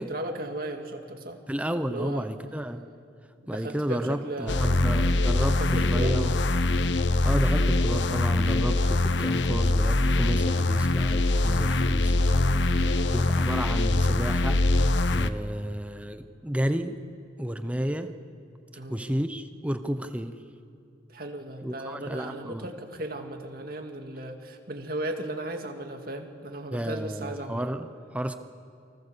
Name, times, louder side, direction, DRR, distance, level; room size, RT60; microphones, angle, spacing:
voice 1, 0.0-1.4 1.9-2.3 3.5-4.8 5.6-6.2 12.3-13.1 18.8-19.0 21.1-27.7, right 1 dB, 50° right, 4 dB, 2.2 m, -36 dB
voice 2, 1.5-2.8 3.5-6.4 7.2-12.2 13.1-14.6 15.1-17.0 17.4-18.2 18.9-20.4 21.6-22.7 26.7-28.4, equal, 5° right, 8 dB, 0.8 m, -31 dB
sound 1, 4.5-15.3, left 2 dB, 65° left, 0.8 m, -23 dB
29.5 x 24.0 x 7.0 m, 2.6 s
head